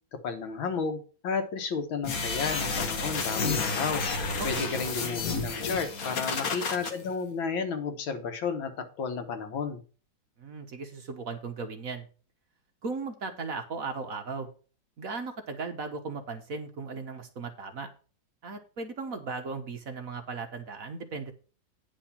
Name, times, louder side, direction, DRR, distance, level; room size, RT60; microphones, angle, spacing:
voice 1, 0.2-4.0 4.4-9.8, left 5 dB, 80° left, 7 dB, 2.0 m, -32 dB
sound 1, 2.0-6.9, left 4 dB, 50° left, 1.6 m, -30 dB
voice 2, 10.4-12.1 12.8-14.5 15.0-17.9 18.4-21.3, right 4 dB, 50° right, 5 dB, 1.3 m, -37 dB
9.7 x 4.9 x 5.7 m, 0.37 s
omnidirectional pair, 2.1 m